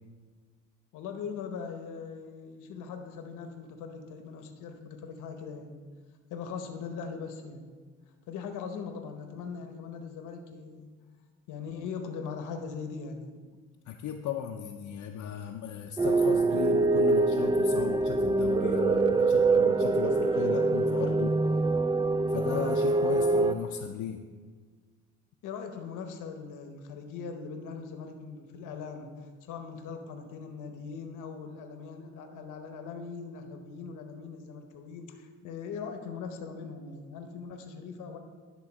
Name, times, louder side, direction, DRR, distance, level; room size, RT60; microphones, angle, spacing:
voice 1, 0.9-5.7 6.3-7.7 8.3-10.9 11.5-13.3 25.4-38.2, left 5 dB, 90° left, 6 dB, 0.9 m, -40 dB
voice 2, 13.9-21.4 22.3-24.2, left 9 dB, 70° left, 3 dB, 0.6 m, -36 dB
sound 1, 16.0-23.5, right 3 dB, 15° right, 0.4 m, -24 dB
11.0 x 3.8 x 6.0 m, 1.5 s
cardioid pair, 90°, 30 cm